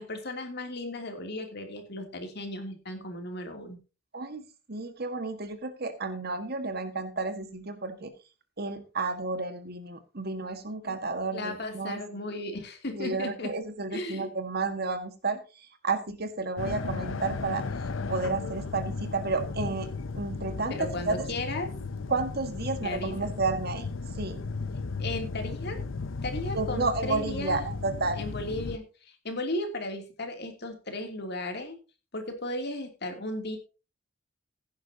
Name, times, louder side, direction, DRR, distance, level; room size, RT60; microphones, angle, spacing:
voice 1, 0.0-3.8 10.8-11.0 11.3-13.5 13.9-14.3 20.7-21.8 22.8-23.3 25.0-25.8 26.2-27.6 28.2-31.8 32.1-33.6, left 1 dB, 55° left, 4 dB, 3.0 m, -35 dB
voice 2, 4.1-8.1 8.6-12.2 12.9-17.6 18.1-19.9 20.1-21.3 22.1-23.9 24.1-24.4 26.5-28.2, right 3 dB, 55° right, 9 dB, 1.8 m, -31 dB
sound 1, 16.6-28.8, left 4 dB, 90° left, 0.7 m, -35 dB
15.5 x 10.5 x 2.9 m, 0.31 s
head